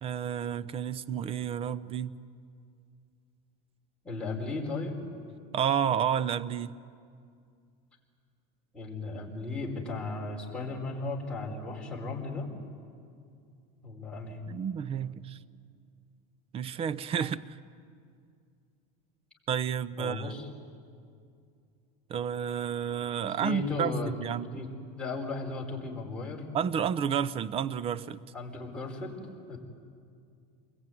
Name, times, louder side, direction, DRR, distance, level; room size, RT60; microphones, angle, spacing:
voice 1, 0.0-2.2 5.5-6.7 14.5-15.4 16.5-17.6 19.5-20.4 22.1-24.6 26.5-28.2, right 8 dB, 30° right, 0.7 m, -31 dB
voice 2, 4.0-4.9 8.7-12.5 13.8-14.4 20.0-20.5 23.3-24.1 24.5-24.7 24.9-26.4 28.3-29.6, left 3 dB, 5° left, 4.8 m, -36 dB
28.0 x 21.5 x 9.4 m
supercardioid pair, 145°, 19 cm